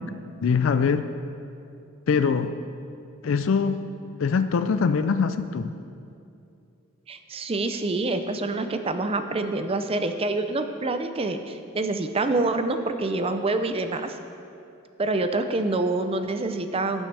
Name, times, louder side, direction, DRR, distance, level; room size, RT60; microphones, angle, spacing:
voice 1, 0.4-1.1 2.1-2.6 3.2-3.8 4.2-5.7, left 5 dB, 70° left, 10 dB, 0.4 m, -23 dB
voice 2, 7.1-14.1 15.0-17.1, right 2 dB, 30° right, 8 dB, 0.5 m, -26 dB
17.5 x 6.3 x 3.3 m, 2.6 s
head